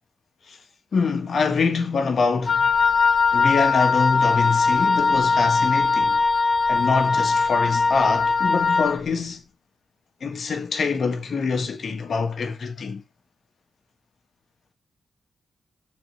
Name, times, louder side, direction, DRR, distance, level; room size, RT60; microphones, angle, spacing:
voice 1, 0.9-2.7 3.3-6.2 6.7-9.4 10.2-13.0, left 5 dB, 60° left, 1.8 m, -24 dB
Wind instrument woodwind instrument, 2.5-9.0, left 4 dB, 45° left, 6.2 m, -20 dB
13.5 x 4.6 x 3.2 m
supercardioid pair, 40°, 0 cm